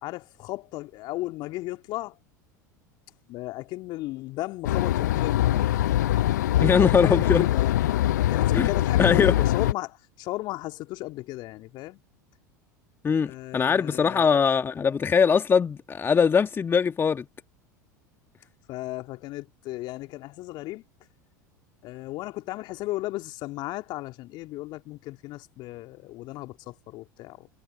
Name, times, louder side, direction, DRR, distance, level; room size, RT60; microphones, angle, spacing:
voice 1, 0.0-2.2 3.3-5.7 6.6-7.8 8.3-12.0 13.2-14.3 18.7-20.8 21.8-27.5, left 18 dB, 50° left, 2.6 m, -35 dB
sound 1, 4.6-9.7, left 13 dB, 70° left, 0.8 m, -23 dB
voice 2, 6.6-7.4 8.5-8.7 9.0-9.3 13.0-17.2, left 6 dB, 25° left, 1.6 m, -21 dB
figure-of-eight pair, 80°, 10 cm